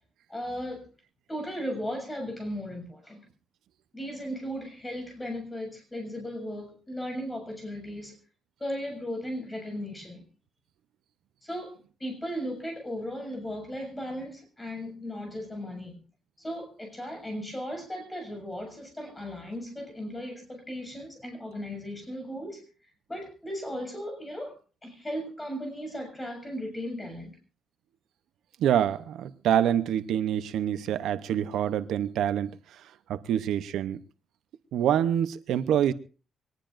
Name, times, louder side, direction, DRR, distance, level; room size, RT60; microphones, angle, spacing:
voice 1, 0.3-0.8 1.3-3.2 3.9-8.2 8.6-10.2 11.4-16.0 16.4-22.6 23.1-24.6 24.8-27.4, equal, 15° left, 6.8 m, -36 dB
voice 2, 28.6-32.6 33.1-34.0 34.7-35.9, right 10 dB, 85° right, 0.7 m, -26 dB
24.0 x 19.0 x 2.6 m
cardioid pair, 140°, 0 cm